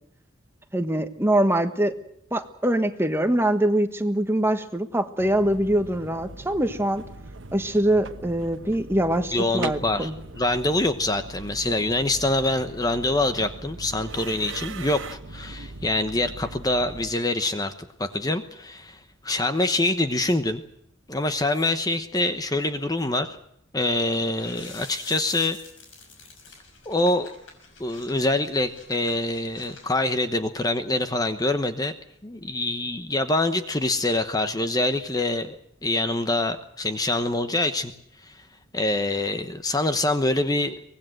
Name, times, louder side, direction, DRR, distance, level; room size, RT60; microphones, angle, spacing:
voice 1, 0.7-1.9 2.3-7.0 7.5-10.1, right 1 dB, 15° right, 8 dB, 1.4 m, -23 dB
sound 1, 5.2-17.1, right 3 dB, 80° right, 1.1 m, -40 dB
voice 2, 9.3-10.1 10.4-17.7 18.0-20.6 21.1-23.3 23.7-25.6 26.9-27.3 27.8-31.9 32.2-37.9 38.2-38.4 38.7-40.7, left 2 dB, 20° left, 9 dB, 1.0 m, -25 dB
sound 2, 24.3-30.2, left 4 dB, 85° left, 5.9 m, -47 dB
24.0 x 19.0 x 7.8 m, 0.72 s
head